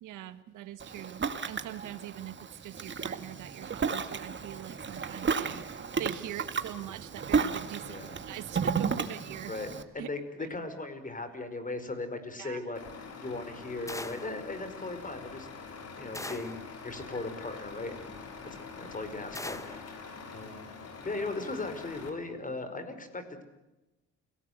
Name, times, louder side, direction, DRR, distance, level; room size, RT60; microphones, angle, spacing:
voice 1, 0.0-2.4 2.6-9.5 10.0-10.1 10.4-10.5 12.4-12.7, right 13 dB, 85° right, 12 dB, 1.6 m, -43 dB
Ocean, 0.8-9.8, right 5 dB, 40° right, 2.1 m, -33 dB
voice 2, 7.8-8.2 9.5-9.7 9.9-12.8 13.2-15.5 16.0-18.1 18.4-20.1 20.3-20.7 21.0-23.4, left 2 dB, 25° left, 10 dB, 5.1 m, -38 dB
Truck, 12.7-22.1, left 4 dB, 55° left, 5.7 m, -45 dB
sound 1, 13.9-14.4 16.1-16.7 19.3-19.9, left 2 dB, 10° left, 1.4 m, -40 dB
29.0 x 18.5 x 8.1 m, 1.0 s
cardioid pair, 90°, 30 cm